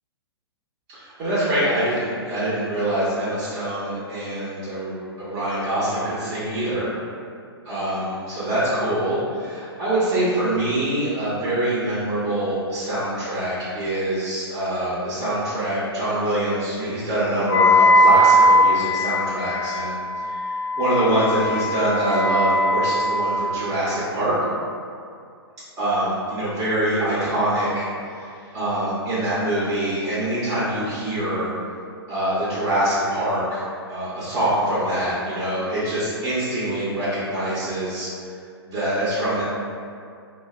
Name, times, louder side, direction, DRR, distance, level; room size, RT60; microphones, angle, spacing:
voice 1, 0.9-6.9 7.6-24.4 25.8-28.3 28.5-31.5 32.1-38.1 38.6-39.4, right 1 dB, 30° right, -10 dB, 0.7 m, -24 dB
Wind instrument woodwind instrument, 17.5-23.6, equal, 70° left, 0.5 m, -19 dB
2.5 x 2.1 x 3.5 m, 2.4 s
figure-of-eight pair, 115°, 14 cm